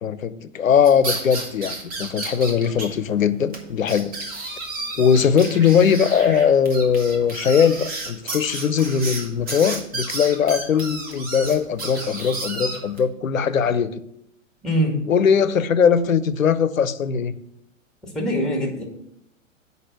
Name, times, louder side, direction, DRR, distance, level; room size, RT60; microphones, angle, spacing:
voice 1, 0.0-4.1 4.5-4.6 5.0-14.0 15.1-17.4, left 7 dB, 75° left, 0.6 m, -20 dB
sound 1, 0.8-2.9 3.1-3.2 3.5-3.6 3.9-13.0, right 2 dB, 20° right, 1.5 m, -32 dB
voice 2, 14.6-14.9 18.0-18.8, equal, ahead, 2.1 m, -23 dB
7.7 x 5.4 x 6.0 m
figure-of-eight pair, 105°, 40 cm